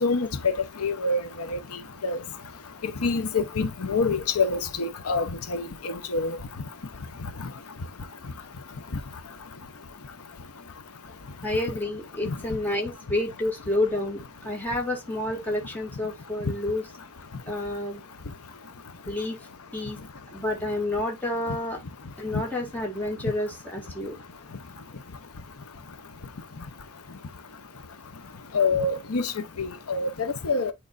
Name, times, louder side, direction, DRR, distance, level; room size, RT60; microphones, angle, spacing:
voice 1, 0.8-1.2 1.5-1.6 2.0-2.2 3.0-6.4 28.5-29.3 29.6-30.7, left 3 dB, 80° left, 0.9 m, -26 dB
voice 2, 11.4-16.9 17.5-18.0 19.1-19.4 19.7-20.0 20.3-21.8 22.2-24.2, left 1 dB, 10° left, 2.1 m, -29 dB
8.8 x 4.6 x 2.5 m
head